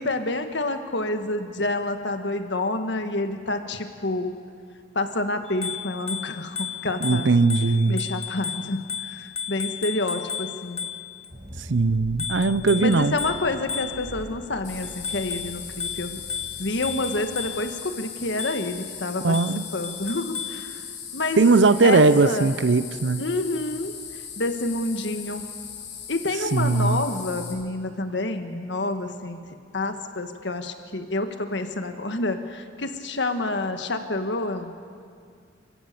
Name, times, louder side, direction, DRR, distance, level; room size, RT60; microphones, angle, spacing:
voice 1, 0.0-4.3 4.9-7.4 7.9-10.8 12.8-16.2 16.6-19.4 19.7-20.8 21.1-21.4 21.8-22.5 23.2-23.9 24.4-25.4 26.1-29.4 29.7-34.7, left 2 dB, 70° left, 7 dB, 1.6 m, -28 dB
Bicycle bell, 5.5-11.3 12.2-14.3 14.8-17.8 18.4-18.8 19.3-20.7, left 7 dB, 35° left, 1.0 m, -34 dB
voice 2, 7.0-8.0 11.7-13.1 19.2-19.6 21.4-23.2 26.5-27.0, right 3 dB, 75° right, 15 dB, 0.7 m, -19 dB
sound 1, 11.3-17.7, equal, 35° right, 4.5 m, -43 dB
sound 2, 14.6-27.5, left 7 dB, 90° left, 7.3 m, -39 dB
28.5 x 15.5 x 6.9 m, 2.2 s
head